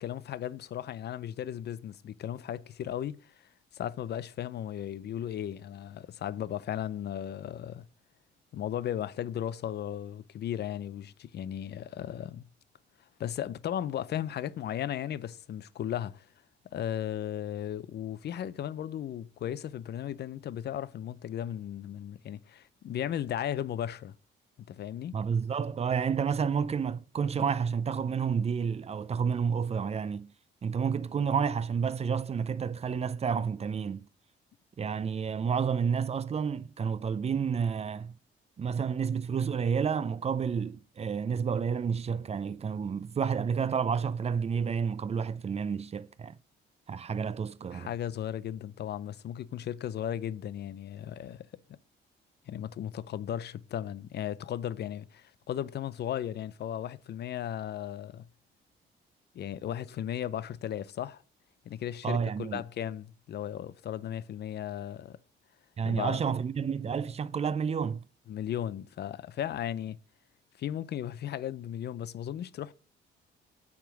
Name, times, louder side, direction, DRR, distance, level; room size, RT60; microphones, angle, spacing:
voice 1, 0.0-3.3 3.7-7.8 8.5-12.4 13.2-16.3 16.7-24.1 24.7-25.1 47.7-51.5 52.5-58.3 59.3-61.2 61.7-65.2 65.8-66.2 68.3-70.0 70.6-72.7, left 10 dB, 55° left, 0.5 m, -36 dB
voice 2, 25.1-30.3 30.6-34.0 34.8-38.1 38.6-46.3 46.9-47.9 62.0-62.6 65.8-68.1, right 6 dB, 30° right, 0.5 m, -30 dB
9.1 x 3.6 x 6.2 m
cardioid pair, 90°, 20 cm